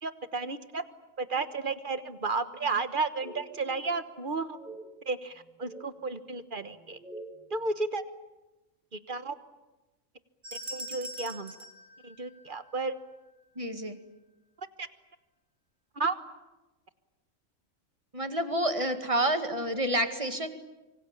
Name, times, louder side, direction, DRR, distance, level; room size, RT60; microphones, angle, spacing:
voice 1, 0.0-0.8 1.2-4.6 5.0-7.0 7.5-8.0 8.9-9.4 10.7-11.5 12.0-13.0 14.6-14.9 15.9-16.1, right 3 dB, 40° right, 11 dB, 1.4 m, -33 dB
sound 1, 2.6-2.9 3.2-4.0 4.5-4.9 5.4-5.9 6.7-7.4, right 2 dB, ahead, 3.2 m, -47 dB
sound 2, 10.4-12.9, equal, 60° right, 3.0 m, -42 dB
voice 2, 13.6-14.0 18.1-20.5, right 1 dB, 25° right, 7 dB, 2.1 m, -29 dB
25.5 x 24.5 x 8.8 m, 1.1 s
omnidirectional pair, 1.3 m